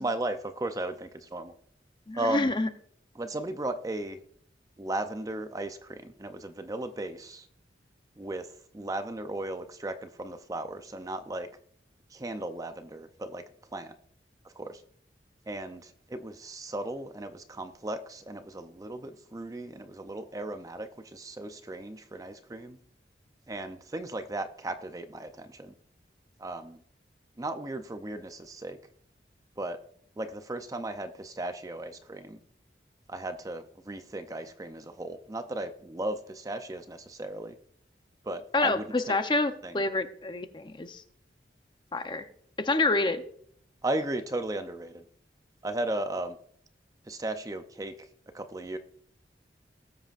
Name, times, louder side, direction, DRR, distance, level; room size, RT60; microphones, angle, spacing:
voice 1, 0.0-1.5 2.1-2.5 3.2-4.2 4.8-7.5 8.2-8.5 8.7-11.5 12.1-13.4 13.7-13.9 14.6-14.8 15.5-22.8 23.5-25.7 26.4-26.8 27.4-28.8 29.6-29.8 30.2-32.4 33.1-37.5 38.2-38.9 39.6-39.7 43.8-45.0 45.6-46.4 47.1-48.1 48.3-48.8, right 2 dB, 20° right, 9 dB, 0.5 m, -36 dB
voice 2, 2.1-2.7 38.5-41.0 41.9-42.3 42.6-43.2, left 2 dB, 25° left, 9 dB, 0.6 m, -27 dB
19.0 x 7.7 x 2.4 m, 0.64 s
head